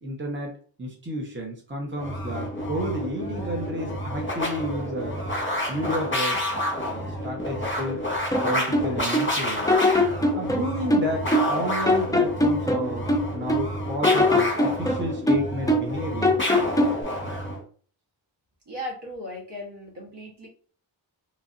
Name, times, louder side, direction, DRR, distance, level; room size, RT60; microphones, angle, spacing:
voice 1, 0.0-5.2 5.7-6.4 6.8-8.0 8.4-9.7 10.3-16.4, equal, 25° right, -1 dB, 0.9 m, -31 dB
sound 1, 1.9-17.6, left 1 dB, 25° left, 1.0 m, -29 dB
sound 2, 8.3-9.3 9.7-11.6 11.8-13.7 14.0-15.9 16.2-17.0, left 1 dB, 10° left, 0.4 m, -22 dB
voice 2, 18.7-20.5, left 1 dB, 60° right, -2 dB, 1.2 m, -37 dB
3.0 x 2.5 x 2.5 m, 0.43 s
wide cardioid pair, 55°, 46 cm